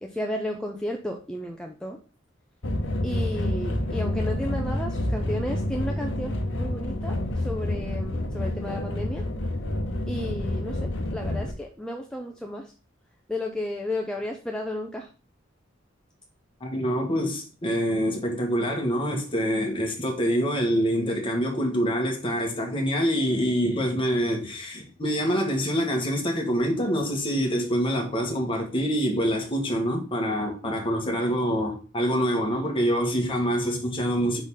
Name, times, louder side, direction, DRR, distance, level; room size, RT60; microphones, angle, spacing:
voice 1, 0.0-2.0 3.0-9.2 10.1-12.7 13.3-15.1, left 1 dB, 5° left, 0.5 m, -33 dB
sound 1, 2.6-11.5, left 1 dB, 70° left, 0.9 m, -28 dB
voice 2, 16.6-34.4, equal, 30° left, 1.5 m, -26 dB
4.8 x 4.0 x 5.5 m
head